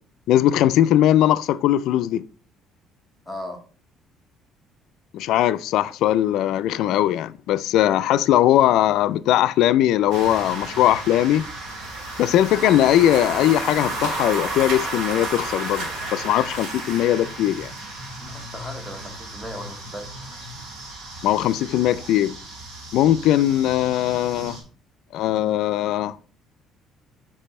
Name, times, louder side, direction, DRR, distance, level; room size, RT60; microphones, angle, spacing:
voice 1, 0.3-2.2 5.1-11.5 12.2-17.7 21.2-22.4 22.9-24.6 25.1-26.2, left 12 dB, 70° left, 0.3 m, -20 dB
voice 2, 3.3-3.6 18.2-20.4, equal, ahead, 1.1 m, -37 dB
sound 1, 10.1-24.6, right 2 dB, 70° right, 2.5 m, -33 dB
5.2 x 4.8 x 4.2 m
cardioid pair, 165°, 0 cm